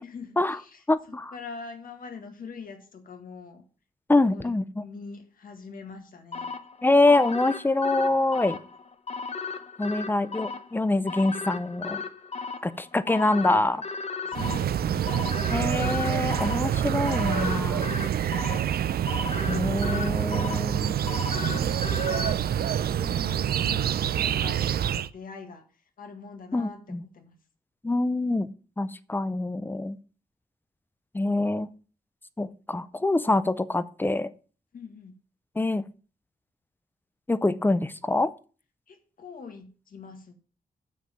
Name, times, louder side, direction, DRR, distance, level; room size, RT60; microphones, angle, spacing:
voice 1, 0.0-3.7 4.2-6.5 14.2-15.2 21.1-25.6 26.0-27.4 34.7-35.1 38.9-40.3, left 5 dB, 65° left, 5 dB, 1.8 m, -43 dB
voice 2, 0.9-1.3 4.1-4.8 6.8-8.6 9.8-12.0 12.6-13.8 15.5-18.1 19.5-21.0 26.5-27.0 27.8-28.5 28.8-30.0 31.1-31.7 32.4-34.3 35.6-35.8 37.3-38.3, left 2 dB, 15° left, 15 dB, 0.5 m, -25 dB
sound 1, 6.3-22.3, left 4 dB, 45° left, 0.9 m, -36 dB
sound 2, 14.3-25.1, right 10 dB, 90° right, 0.5 m, -27 dB
7.4 x 6.2 x 7.0 m, 0.38 s
wide cardioid pair, 170°, 15 cm